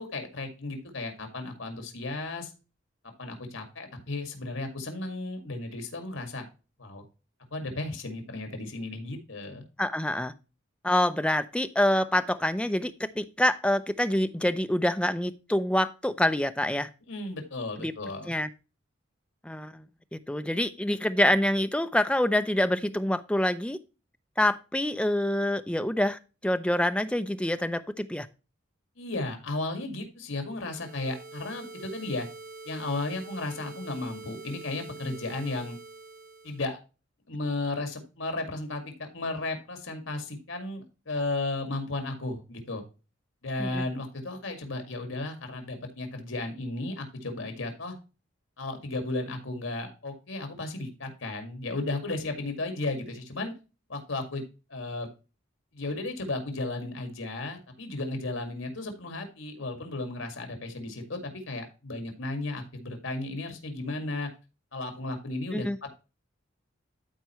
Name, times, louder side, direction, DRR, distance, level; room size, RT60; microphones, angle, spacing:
voice 1, 0.0-2.5 3.2-6.5 6.8-7.0 7.5-9.6 17.1-18.3 29.0-32.3 32.6-35.8 36.4-36.8 37.3-42.8 43.4-47.9 48.6-53.5 53.9-54.4 54.7-55.1 55.7-64.3 64.7-65.9, left 2 dB, 80° left, 5 dB, 2.2 m, -34 dB
voice 2, 9.8-10.3 10.8-16.9 17.8-17.9 18.3-18.5 19.4-19.8 20.1-23.8 24.4-28.3 43.6-43.8 65.5-65.8, left 1 dB, 5° left, 10 dB, 0.5 m, -26 dB
sound 1, 30.5-36.7, right 3 dB, 40° right, 0.8 m, -45 dB
12.5 x 4.6 x 3.0 m, 0.31 s
head